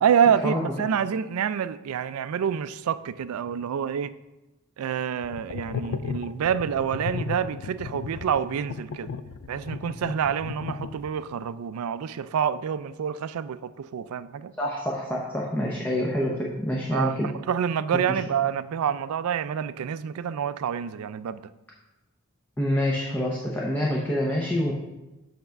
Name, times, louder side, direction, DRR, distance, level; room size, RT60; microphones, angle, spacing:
voice 1, 0.0-4.1 4.8-9.1 9.5-14.5 16.9-21.5, right 8 dB, 85° right, 0.3 m, -27 dB
sound 1, 5.2-11.3, left 6 dB, 80° left, 0.4 m, -35 dB
voice 2, 14.6-17.3 18.1-18.2 22.6-24.7, left 1 dB, 10° left, 0.7 m, -26 dB
7.8 x 3.4 x 5.8 m
head